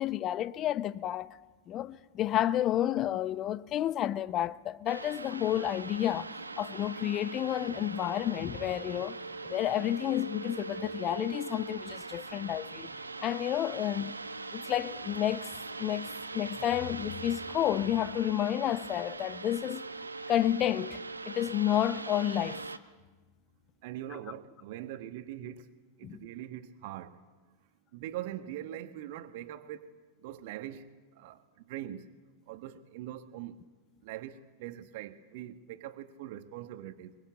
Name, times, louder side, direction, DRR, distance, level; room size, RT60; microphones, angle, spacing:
voice 1, 0.0-1.3 1.7-6.3 6.6-9.2 9.4-12.9 13.2-14.1 14.5-15.5 15.8-16.1 16.3-19.8 20.3-22.6 26.0-26.2, left 12 dB, 30° left, 0.9 m, -30 dB
sound 1, 4.9-22.8, right 3 dB, 80° right, 1.1 m, -41 dB
voice 2, 23.8-25.7 26.0-27.2 27.9-32.1 32.5-33.6 34.0-37.2, right 12 dB, 50° right, 1.5 m, -42 dB
24.0 x 23.5 x 8.3 m
figure-of-eight pair, 90°, 0 cm